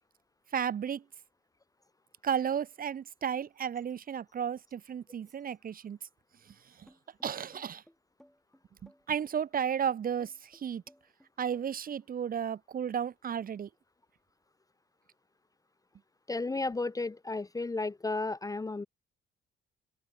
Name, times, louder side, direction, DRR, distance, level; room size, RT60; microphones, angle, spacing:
voice 1, 0.5-1.0 2.2-6.0 7.2-7.8 9.1-10.3 10.6-10.8 11.4-13.7, right 8 dB, 45° right, 0.9 m, -33 dB
sound 1, 6.9-12.0, equal, ahead, 4.2 m, -60 dB
voice 2, 16.3-18.9, left 3 dB, 15° left, 0.6 m, -33 dB
open air
cardioid pair, 90°, 20 cm